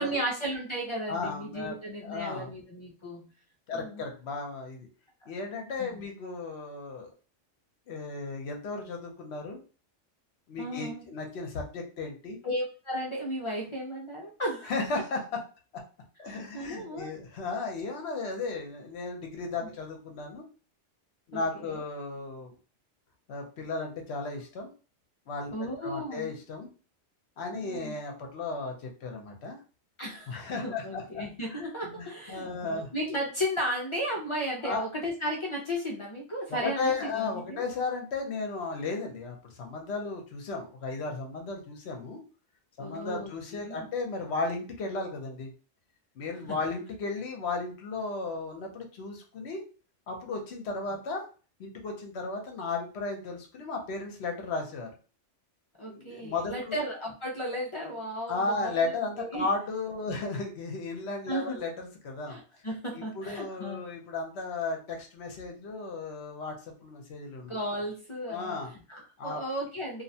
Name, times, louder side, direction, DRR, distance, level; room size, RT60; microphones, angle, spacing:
voice 1, 0.0-3.3 3.7-4.0 5.8-6.0 10.6-11.1 12.4-14.7 16.3-17.1 19.6-19.7 21.3-21.8 25.5-26.3 27.5-27.9 30.0-37.7 42.8-43.3 43.6-43.9 46.5-46.6 55.8-58.8 59.2-59.5 61.3-61.6 62.3-63.9 67.5-68.6 68.9-70.0, equal, 50° left, -2 dB, 0.3 m, -35 dB
voice 2, 1.1-1.8 2.0-2.5 3.7-4.9 5.3-7.1 7.9-9.6 10.5-12.4 14.7-15.4 15.7-15.8 16.2-20.4 21.3-22.5 23.3-24.7 25.3-26.7 27.4-29.6 30.3-31.2 31.5-32.9 34.6-34.8 36.5-42.2 42.8-45.5 46.2-49.6 50.1-51.2 51.6-54.9 55.9-56.8 58.3-62.4 62.9-67.5 68.3-68.7 69.2-69.4, left 3 dB, 65° left, 2 dB, 0.9 m, -35 dB
2.6 x 2.1 x 2.6 m, 0.36 s
omnidirectional pair, 1.2 m